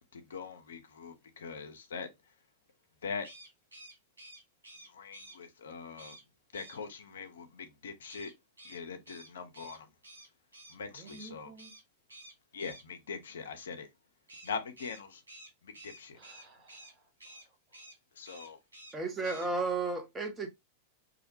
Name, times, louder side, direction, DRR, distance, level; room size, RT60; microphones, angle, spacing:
voice 1, 0.0-2.1 3.0-3.3 4.9-6.2 6.5-8.3 8.6-9.9 10.7-11.5 12.5-13.9 14.4-15.2 15.6-16.2 18.2-18.6, left 5 dB, 65° left, 0.4 m, -42 dB
sound 1, 3.2-5.4 6.0-6.2 6.5-6.8 8.1-10.8 11.1-11.3 11.6-11.8 12.1-12.8 14.3-16.9 17.2-17.5 17.7-18.0 18.2-19.0 19.2-19.5, right 1 dB, 80° right, 0.7 m, -52 dB
voice 2, 10.9-11.7 16.1-17.9, right 3 dB, 35° right, 1.0 m, -54 dB
voice 3, 18.9-20.5, right 3 dB, 15° right, 0.5 m, -33 dB
2.4 x 2.0 x 2.7 m
figure-of-eight pair, 90°, 0 cm